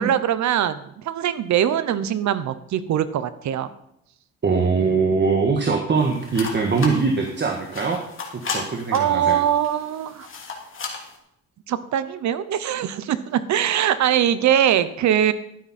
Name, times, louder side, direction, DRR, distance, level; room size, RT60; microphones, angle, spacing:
voice 1, 0.0-3.7 8.9-10.3 11.7-15.3, right 10 dB, 65° right, 14 dB, 0.9 m, -22 dB
voice 2, 4.4-8.0 8.4-9.4, right 4 dB, 35° right, 2 dB, 1.6 m, -22 dB
sound 1, 6.0-11.2, left 4 dB, 45° left, 2.7 m, -35 dB
12.5 x 9.4 x 4.3 m, 0.79 s
cardioid pair, 90°, 30 cm